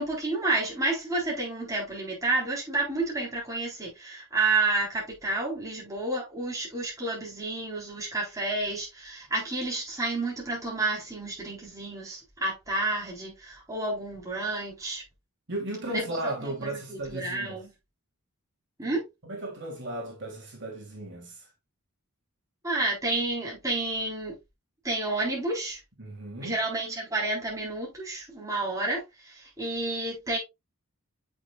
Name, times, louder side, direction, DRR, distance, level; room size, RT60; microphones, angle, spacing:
voice 1, 0.0-15.0 15.9-17.7 18.8-19.1 22.6-24.4 24.8-25.8 26.4-30.4, right 2 dB, 15° right, 3.9 m, -30 dB
voice 2, 15.5-17.6 18.8-18.9 19.2-21.5 26.0-26.6, right 1 dB, 55° right, 3.0 m, -36 dB
7.9 x 6.4 x 2.4 m
head